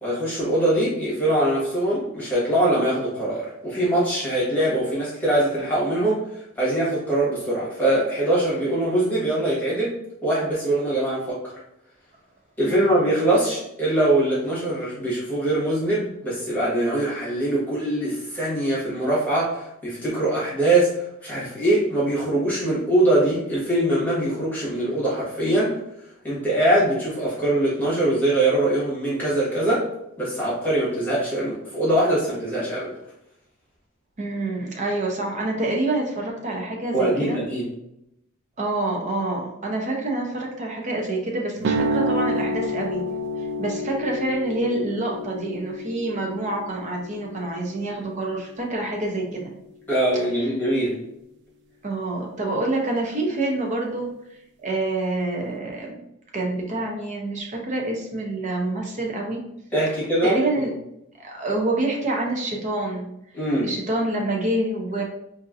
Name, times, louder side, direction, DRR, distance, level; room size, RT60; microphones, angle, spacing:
voice 1, 0.0-6.2 6.6-9.9 10.2-11.5 12.6-25.7 26.2-29.8 30.2-32.9 36.9-37.7 49.9-50.9 59.7-60.7 63.3-63.7, right 1 dB, 10° left, -8 dB, 1.4 m, -22 dB
voice 2, 34.2-37.4 38.6-43.1 43.6-49.5 51.8-54.1 54.6-55.9 56.3-59.4 60.2-60.7 61.2-63.1 63.6-65.0, right 2 dB, 35° right, 0 dB, 0.7 m, -27 dB
sound 1, 41.6-49.6, equal, 55° right, 0.3 m, -30 dB
4.4 x 2.6 x 2.6 m, 0.81 s
head